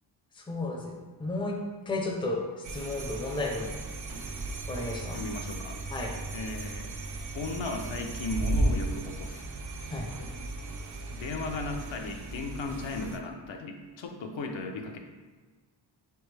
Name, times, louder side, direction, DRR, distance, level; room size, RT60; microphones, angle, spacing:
voice 1, 0.3-1.6 1.9-3.8 4.7-5.2 5.9-6.1 9.9-10.1, left 2 dB, 10° left, 0 dB, 0.4 m, -33 dB
sound 1, 2.6-13.2, right 2 dB, 45° right, 0.4 m, -35 dB
sound 2, 4.1-4.6 6.1-7.0 7.8-8.1 8.4-9.1 9.8-10.6, right 1 dB, 90° right, 0.8 m, -50 dB
voice 2, 5.1-5.8 6.3-6.9 7.3-9.5 11.1-15.0, left 3 dB, 80° left, 3 dB, 0.6 m, -36 dB
4.3 x 3.3 x 3.2 m, 1.4 s
wide cardioid pair, 150°, 45 cm